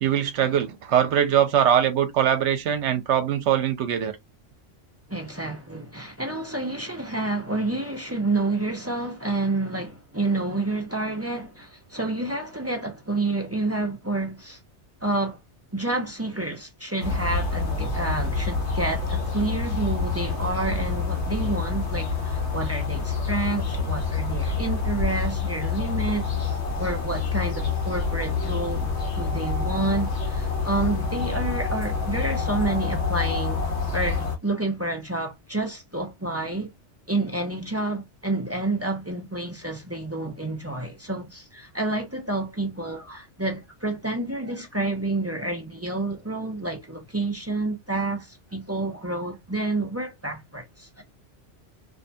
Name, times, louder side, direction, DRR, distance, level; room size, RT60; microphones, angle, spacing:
voice 1, 0.0-4.2, right 9 dB, 75° right, 0.9 m, -22 dB
voice 2, 5.1-14.6 15.0-15.4 15.7-28.9 29.1-33.6 33.9-36.7 37.1-51.0, right 2 dB, 25° right, 0.3 m, -29 dB
sound 1, 17.0-34.4, left 4 dB, 70° left, 1.1 m, -27 dB
2.6 x 2.2 x 2.6 m
omnidirectional pair, 1.2 m